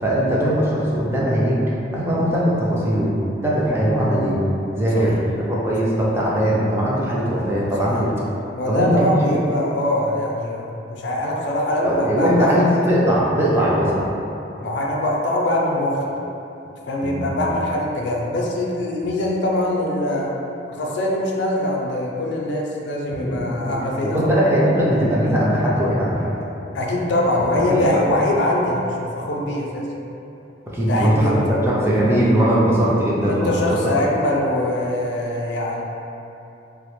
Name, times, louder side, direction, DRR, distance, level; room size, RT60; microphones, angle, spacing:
voice 1, 0.0-1.6 1.9-3.1 3.4-4.4 4.7-8.1 8.7-9.4 11.8-14.1 17.0-17.5 23.2-23.4 23.7-23.8 24.0-26.4 27.7-28.0 30.7-33.8, equal, 15° right, -6 dB, 0.3 m, -20 dB
voice 2, 8.5-12.7 14.6-16.0 16.9-20.3 20.7-24.3 26.7-29.9 30.8-31.4 33.3-35.8, left 1 dB, 70° left, -2 dB, 0.4 m, -23 dB
2.3 x 2.1 x 2.9 m, 2.8 s
head